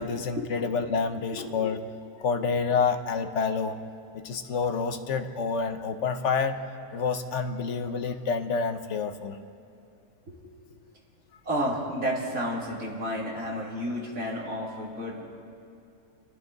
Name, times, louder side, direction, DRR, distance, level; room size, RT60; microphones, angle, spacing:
voice 1, 0.0-1.8 2.2-3.8 4.1-6.6 6.9-9.4, left 5 dB, 60° left, 8 dB, 1.2 m, -28 dB
voice 2, 11.4-15.3, equal, 85° right, -3 dB, 3.0 m, -31 dB
28.0 x 11.5 x 4.0 m, 2.5 s
omnidirectional pair, 1.4 m